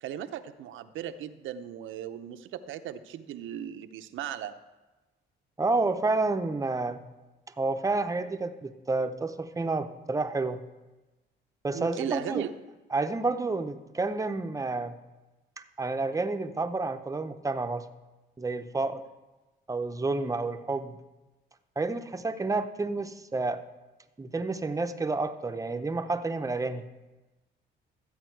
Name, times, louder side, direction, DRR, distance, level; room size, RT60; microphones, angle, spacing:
voice 1, 0.0-4.6 11.7-12.5, right 10 dB, 80° right, 10 dB, 0.7 m, -37 dB
voice 2, 5.6-7.0 7.6-10.6 11.6-12.4 12.9-15.0 15.8-17.8 18.4-19.0 19.7-21.0 21.8-23.6 24.2-26.9, right 3 dB, 15° right, 8 dB, 0.7 m, -30 dB
13.5 x 8.6 x 4.6 m, 1.1 s
cardioid pair, 90°, 20 cm